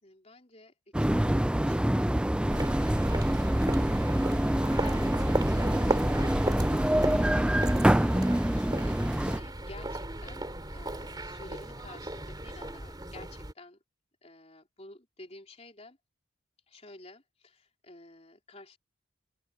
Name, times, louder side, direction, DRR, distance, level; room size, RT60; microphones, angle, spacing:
voice 1, 0.0-4.3 4.8-5.2 5.5-6.0 7.0-8.2 8.5-13.8 14.2-16.0 16.7-18.8, left 2 dB, 30° left, 4.1 m, -52 dB
sound 1, 0.9-9.4, right 1 dB, 5° right, 0.4 m, -26 dB
sound 2, 2.5-13.5, right 1 dB, 20° right, 3.4 m, -35 dB
head